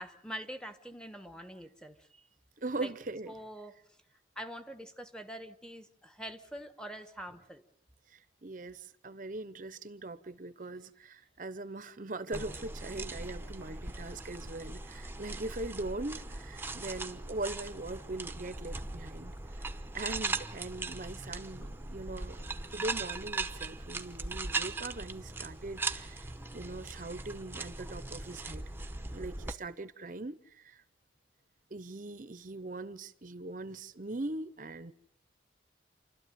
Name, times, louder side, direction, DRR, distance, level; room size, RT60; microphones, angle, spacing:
voice 1, 0.0-2.3 2.8-2.9 3.3-3.7 4.3-7.6, equal, 5° left, 1.3 m, -44 dB
voice 2, 2.6-3.3 8.1-19.7 19.9-22.4 22.7-28.7 29.1-30.8 31.7-34.9, right 2 dB, 45° right, 0.8 m, -41 dB
sound 1, 12.3-29.5, right 3 dB, 10° right, 0.9 m, -39 dB
28.5 x 13.0 x 9.3 m
head